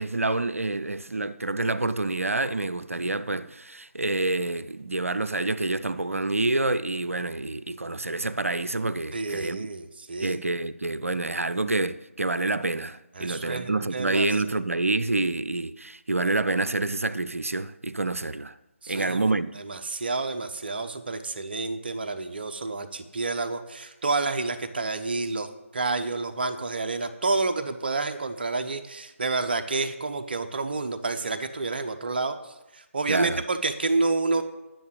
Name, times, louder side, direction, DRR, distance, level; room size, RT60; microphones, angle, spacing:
voice 1, 0.0-9.7 10.2-18.5 18.9-19.5 33.1-33.4, right 2 dB, 80° right, 0.6 m, -27 dB
voice 2, 9.1-10.4 13.2-14.3 18.8-32.4 32.7-34.4, right 3 dB, 45° right, 1.0 m, -29 dB
10.5 x 6.8 x 9.3 m
figure-of-eight pair, 150°, 7 cm